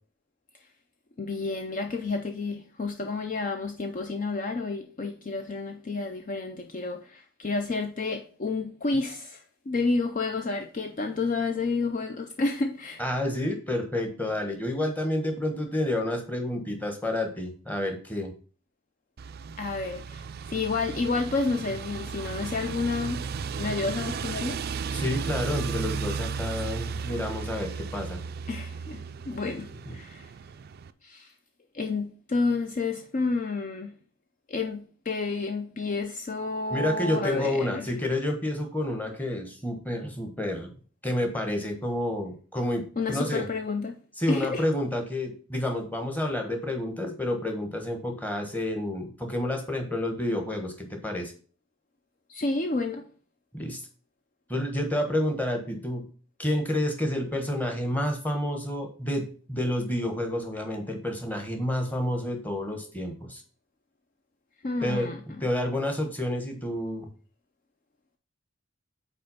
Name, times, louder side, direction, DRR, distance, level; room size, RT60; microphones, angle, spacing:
voice 1, 1.2-13.0 19.6-23.2 23.6-24.6 28.5-30.3 31.0-31.3 31.7-33.9 34.5-37.9 43.0-44.0 44.3-44.6 52.3-53.1 64.6-65.2, left 3 dB, 40° left, 0.5 m, -30 dB
voice 2, 13.0-18.3 24.9-28.2 29.9-30.0 36.7-40.7 41.0-43.5 44.2-51.3 53.5-53.8 54.5-56.1 56.4-63.4 64.8-65.1 65.4-67.1, left 1 dB, 10° left, 1.1 m, -29 dB
sound 1, 19.2-30.9, right 5 dB, 45° right, 0.3 m, -35 dB
5.4 x 4.3 x 5.5 m
head